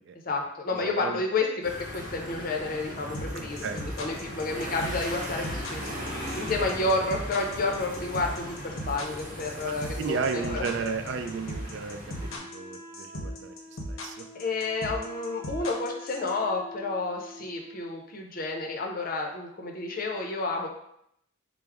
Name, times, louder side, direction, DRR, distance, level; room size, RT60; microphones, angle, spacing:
voice 1, 0.3-5.9 6.3-10.7 14.3-20.7, left 3 dB, 45° left, 2 dB, 0.5 m, -30 dB
voice 2, 0.9-1.2 3.3-3.8 4.5-4.6 9.6-13.5 13.9-14.2, right 5 dB, 60° right, 7 dB, 0.3 m, -34 dB
sound 1, 1.6-12.4, equal, 40° right, 1.1 m, -38 dB
sound 2, 3.1-16.3, equal, 90° left, 0.6 m, -37 dB
Wind instrument woodwind instrument, 12.1-18.0, left 1 dB, 15° right, 0.9 m, -46 dB
4.6 x 2.0 x 3.4 m, 0.74 s
head